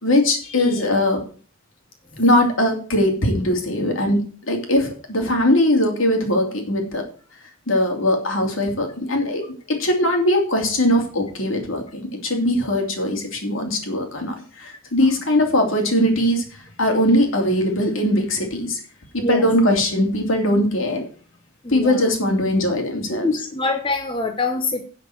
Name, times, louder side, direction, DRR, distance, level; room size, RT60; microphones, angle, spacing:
voice 1, 0.0-1.2 2.2-7.0 7.7-18.8 19.1-21.0 21.7-23.3, left 1 dB, 70° left, 2 dB, 2.9 m, -20 dB
voice 2, 19.2-19.5 21.6-22.1 23.1-24.9, left 3 dB, 25° left, 5 dB, 0.8 m, -25 dB
11.0 x 5.2 x 7.8 m, 0.41 s
head